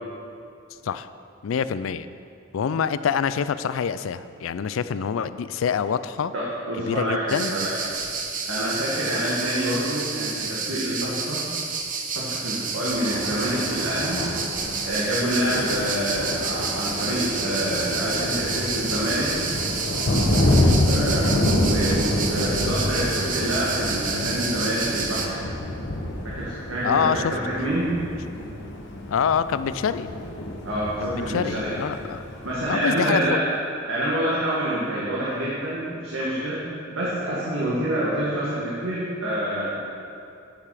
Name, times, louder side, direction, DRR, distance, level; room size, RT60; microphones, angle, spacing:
voice 1, 1.4-2.1 2.5-6.3 6.8-7.5 20.5-21.3 26.8-27.3 29.1-30.1 31.0-32.2 32.7-33.4, left 7 dB, 80° left, 13 dB, 0.4 m, -26 dB
voice 2, 6.3-7.9 8.5-11.4 12.2-14.2 14.9-19.3 20.9-21.3 21.6-25.4 26.2-27.9 30.7-31.8 32.4-33.5 33.9-36.6 36.9-39.7, right 1 dB, 85° right, -7 dB, 1.7 m, -27 dB
sound 1, 7.3-25.3, right 5 dB, 40° right, 0.8 m, -30 dB
Thunder, 12.9-32.6, left 1 dB, 65° left, 1.3 m, -28 dB
10.5 x 6.8 x 4.9 m, 2.6 s
head